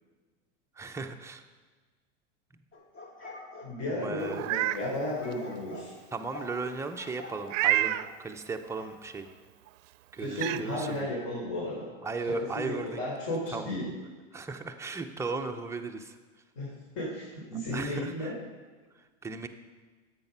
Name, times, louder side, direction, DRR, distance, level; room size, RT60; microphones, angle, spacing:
voice 1, 0.8-1.4 4.0-4.5 6.1-9.3 10.1-11.1 12.0-13.0 13.5-13.7 14.3-16.1 17.7-18.3 19.2-19.5, right 3 dB, 5° right, 4 dB, 0.5 m, -36 dB
sound 1, 2.7-4.4 5.1-5.9 6.3-6.6 6.9-7.4 8.0-8.2 8.7-8.9, left 2 dB, 30° left, 2.0 m, -46 dB
voice 2, 3.6-5.9 10.2-11.9 12.2-13.9 16.6-18.3, left 1 dB, 50° left, -5 dB, 4.0 m, -34 dB
Meow, 4.3-4.8 5.3-5.4 7.5-8.1 9.7-9.8 10.3-10.6, right 14 dB, 80° right, 0.6 m, -27 dB
10.5 x 8.2 x 5.5 m, 1.4 s
supercardioid pair, 125°, 38 cm